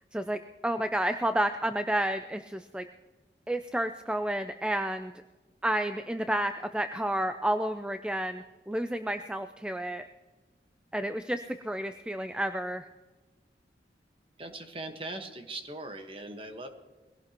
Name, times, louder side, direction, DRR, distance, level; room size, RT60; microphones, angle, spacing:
voice 1, 0.1-2.8 3.5-5.1 5.6-10.0 10.9-12.8, right 1 dB, 5° right, 8 dB, 0.4 m, -30 dB
voice 2, 14.4-16.7, right 2 dB, 30° right, 6 dB, 1.3 m, -40 dB
22.0 x 17.0 x 3.0 m, 1.2 s
head